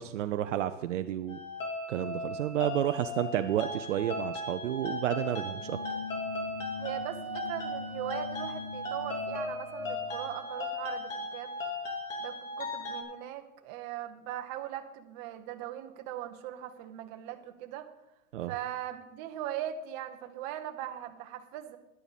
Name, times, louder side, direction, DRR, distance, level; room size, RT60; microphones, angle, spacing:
voice 1, 0.0-1.4 1.9-5.8 18.3-18.5, right 11 dB, 60° right, 9 dB, 0.7 m, -31 dB
sound 1, 1.3-13.0, left 1 dB, 65° left, 3.4 m, -37 dB
sound 2, 5.5-10.2, left 5 dB, 20° left, 2.0 m, -43 dB
voice 2, 6.8-11.5 12.2-17.9 18.4-21.8, right 11 dB, 30° right, 5 dB, 1.0 m, -40 dB
11.0 x 10.0 x 4.2 m, 0.97 s
hypercardioid pair, 150°, 41 cm